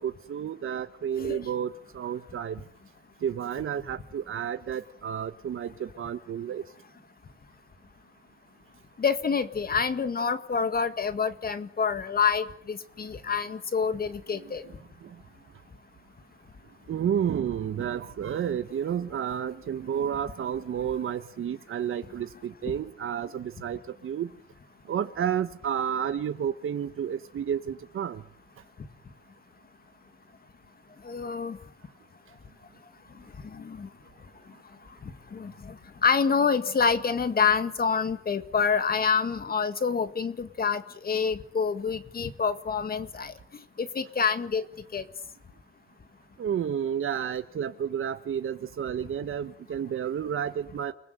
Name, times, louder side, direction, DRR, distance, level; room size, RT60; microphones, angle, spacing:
voice 1, 0.0-2.6 3.2-6.6 14.3-14.4 16.9-24.3 24.9-28.2 46.4-50.9, right 9 dB, 85° right, 10 dB, 1.2 m, -31 dB
voice 2, 9.0-14.6 22.7-22.8 31.0-31.6 33.4-33.9 35.0-43.3 43.8-44.6 44.9-45.1, left 6 dB, 45° left, 11 dB, 1.9 m, -27 dB
29.0 x 21.0 x 7.9 m, 0.64 s
wide cardioid pair, 150°, 21 cm